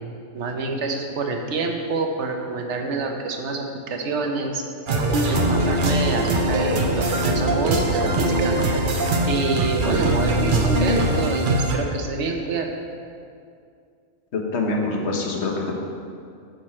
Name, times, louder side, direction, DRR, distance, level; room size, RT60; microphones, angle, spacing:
voice 1, 0.0-4.6 5.2-8.7 9.3-12.7, right 3 dB, 65° right, 3 dB, 1.1 m, -27 dB
sound 1, 4.9-11.8, right 1 dB, 45° right, 0.8 m, -21 dB
voice 2, 14.3-15.7, left 3 dB, 60° left, 1 dB, 1.2 m, -25 dB
7.9 x 6.8 x 4.3 m, 2.3 s
omnidirectional pair, 1.4 m